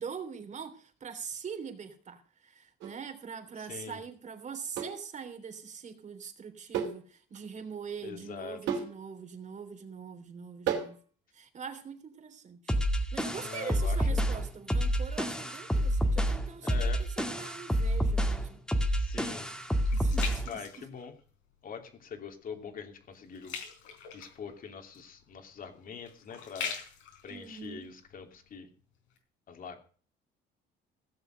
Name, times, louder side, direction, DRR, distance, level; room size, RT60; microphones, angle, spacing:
voice 1, 0.0-11.0 11.3-12.8 13.1-18.6 19.9-20.6 27.3-27.9, right 6 dB, 40° right, 3.2 m, -43 dB
sound 1, 2.8-3.0 4.7-5.0 6.7-7.0 7.3-7.4 8.7-9.0 10.7-11.0, right 8 dB, 80° right, 3.2 m, -32 dB
voice 2, 3.6-4.0 8.0-8.8 13.4-14.2 16.6-17.1 19.0-19.5 20.5-21.2 21.6-23.6 24.1-26.7 27.2-28.7 29.5-29.8, left 6 dB, 50° left, 2.9 m, -44 dB
sound 2, 12.7-20.5, equal, 5° left, 2.1 m, -28 dB
sound 3, 18.5-21.5 22.0-22.3 22.6-28.6 29.1-29.2, left 6 dB, 85° left, 4.7 m, -43 dB
16.5 x 7.1 x 6.5 m
cardioid pair, 105°, 19 cm